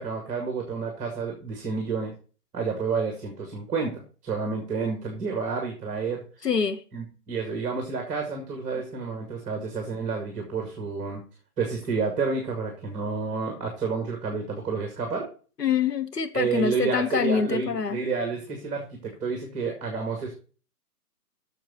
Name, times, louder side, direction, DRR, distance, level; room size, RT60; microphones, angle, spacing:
voice 1, 0.0-2.1 2.5-6.2 6.9-11.2 11.6-15.3 16.3-20.3, right 4 dB, 15° right, 2.1 m, -30 dB
voice 2, 6.4-6.8 15.6-18.0, left 7 dB, 75° left, 1.4 m, -25 dB
9.0 x 6.9 x 4.3 m
figure-of-eight pair, 135°, 48 cm